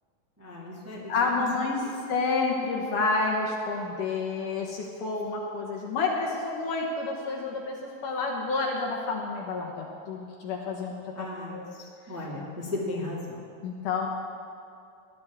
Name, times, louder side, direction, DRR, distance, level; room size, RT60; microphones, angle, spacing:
voice 1, 0.4-1.1 11.1-11.6 12.1-13.4, left 2 dB, 10° right, -6 dB, 1.0 m, -35 dB
voice 2, 1.1-1.8 2.1-10.9 11.5-11.7 13.6-14.1, left 3 dB, 65° left, -1 dB, 2.3 m, -29 dB
21.0 x 11.5 x 3.6 m, 2.5 s
omnidirectional pair, 4.6 m